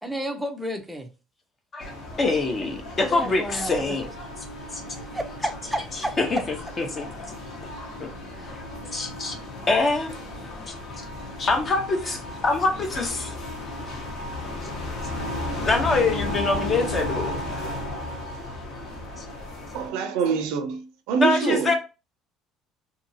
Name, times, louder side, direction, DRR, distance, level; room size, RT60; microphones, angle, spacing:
voice 1, 0.0-1.1 3.1-4.0 4.9-6.1 8.3-8.6 10.4-10.5, equal, 5° right, 0.5 m, -32 dB
voice 2, 1.7-4.1 4.7-4.8 6.2-6.4 6.8-7.1 8.0-8.1 8.9-9.3 9.7-10.1 10.7-10.8 11.4-13.3 15.6-17.4 19.2-19.3 21.2-21.8, left 3 dB, 30° left, 0.8 m, -24 dB
sound 1, 1.8-19.9, left 1 dB, 60° left, 1.1 m, -34 dB
voice 3, 19.7-21.7, right 5 dB, 80° right, 0.5 m, -25 dB
2.7 x 2.7 x 2.7 m
cardioid pair, 120°, 0 cm